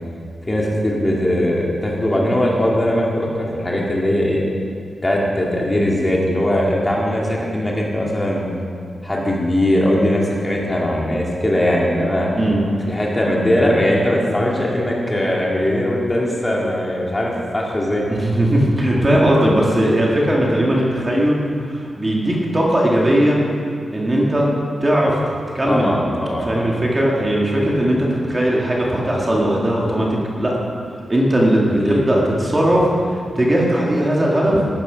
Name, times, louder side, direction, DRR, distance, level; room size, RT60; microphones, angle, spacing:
voice 1, 0.5-4.4 5.0-8.5 9.0-12.3 12.9-18.1 25.7-26.7 27.7-27.9 31.8-32.0, left 1 dB, 15° left, -3 dB, 2.1 m, -20 dB
voice 2, 18.1-21.4 21.7-23.4 23.9-24.5 24.8-25.2 25.5-25.9 26.4-30.1 30.4-30.6 31.1-34.6, right 1 dB, 20° right, -3 dB, 2.1 m, -18 dB
14.5 x 12.5 x 5.1 m, 2.3 s
wide cardioid pair, 170°, 0 cm